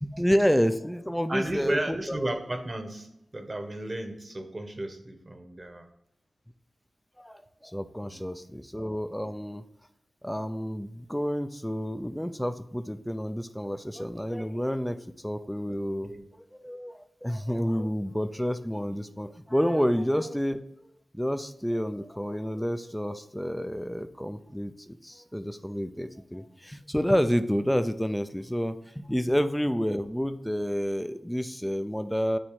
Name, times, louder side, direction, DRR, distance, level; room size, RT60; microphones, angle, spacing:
voice 1, 0.0-2.3 7.2-9.6 10.2-16.1 16.5-20.6 21.1-32.4, equal, 5° left, 10 dB, 0.6 m, -29 dB
voice 2, 1.3-5.9 8.0-8.3 9.2-9.4 16.0-16.3, right 1 dB, 40° right, 6 dB, 1.2 m, -34 dB
8.9 x 3.1 x 4.7 m, 0.84 s
cardioid pair, 45°, 0 cm